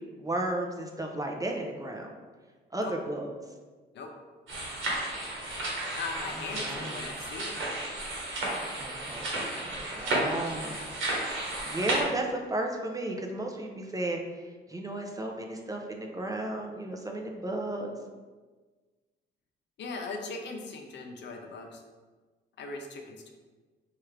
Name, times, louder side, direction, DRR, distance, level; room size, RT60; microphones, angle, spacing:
voice 1, 0.2-2.1 2.7-3.3 4.9-5.0 6.6-7.1 8.8-10.8 11.7-14.2 14.7-17.9, right 1 dB, 15° right, 2 dB, 0.5 m, -34 dB
sound 1, 4.5-12.0, right 2 dB, 80° right, 1.2 m, -33 dB
voice 2, 5.9-7.6 19.8-21.8 22.6-23.3, left 3 dB, 65° left, 3 dB, 0.6 m, -39 dB
4.3 x 2.4 x 3.2 m, 1.3 s
cardioid pair, 90°, 20 cm